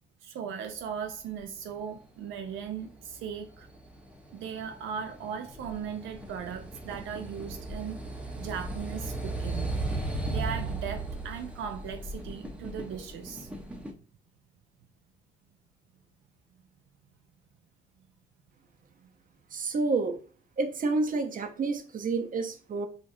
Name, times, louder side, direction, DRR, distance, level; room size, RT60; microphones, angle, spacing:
voice 1, 0.2-3.7 4.3-8.0 8.4-9.7 10.3-13.5, right 7 dB, 80° right, 0.4 m, -38 dB
sound 1, 2.6-13.9, right 2 dB, 5° right, 0.7 m, -36 dB
voice 2, 19.5-20.2 20.6-22.9, right 3 dB, 45° right, 0.7 m, -29 dB
4.9 x 2.4 x 2.6 m
cardioid pair, 90°, 20 cm